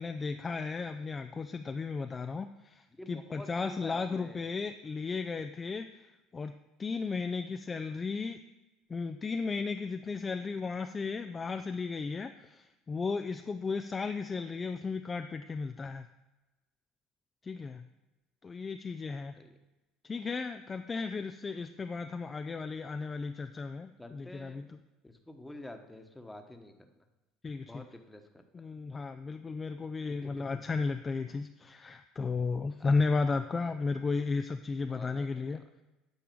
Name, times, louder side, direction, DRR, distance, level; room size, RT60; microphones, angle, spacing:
voice 1, 0.0-6.5 6.8-8.4 8.9-16.1 17.4-17.9 18.4-19.3 20.0-24.8 27.4-27.9 28.5-35.6, left 4 dB, 25° left, 7 dB, 0.5 m, -34 dB
voice 2, 3.0-4.5 19.4-19.5 24.0-24.7 25.0-26.9 27.6-28.4 30.2-30.4 32.8-32.9 34.9-35.6, left 1 dB, 10° left, 5 dB, 1.2 m, -48 dB
9.1 x 4.7 x 7.1 m, 1.1 s
supercardioid pair, 90°, 0 cm